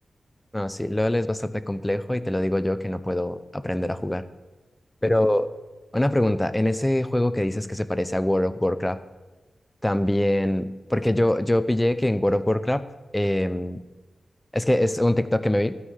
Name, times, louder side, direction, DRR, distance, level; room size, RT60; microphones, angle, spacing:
voice 1, 0.5-4.2 5.0-5.5 5.9-9.0 9.8-12.8 13.1-13.8 14.5-15.8, left 1 dB, 15° left, 13 dB, 0.7 m, -23 dB
13.0 x 5.6 x 8.2 m, 1.2 s
cardioid pair, 50°, 0 cm